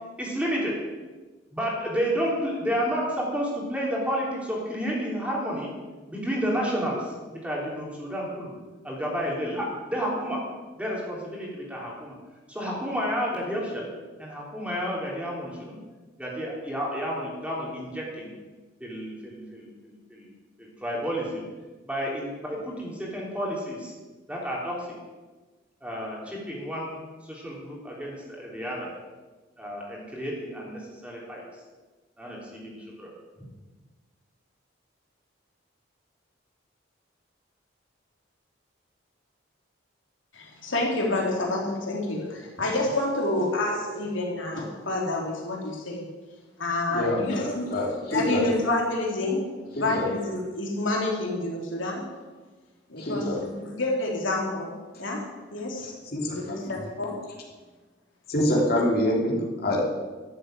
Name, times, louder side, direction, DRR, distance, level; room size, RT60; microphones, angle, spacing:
voice 1, 0.2-0.7 1.5-5.7 6.1-7.0 7.3-8.5 8.8-10.4 10.8-12.1 12.5-13.9 14.2-15.8 16.2-18.3 18.8-20.3 20.6-21.5 21.9-23.9 24.3-24.7 25.8-28.9 29.6-31.4 32.2-33.1, equal, 5° right, -3 dB, 3.5 m, -31 dB
voice 2, 40.3-46.0 46.6-47.8 48.1-49.4 49.8-52.1 52.9-54.7 55.0-55.2 55.5-56.0 56.3-57.2, left 2 dB, 80° left, -1 dB, 3.6 m, -28 dB
voice 3, 46.9-48.5 49.7-50.1 52.9-53.4 56.1-56.7 58.3-59.8, left 1 dB, 50° left, -3 dB, 3.4 m, -26 dB
13.0 x 7.8 x 9.2 m, 1.3 s
head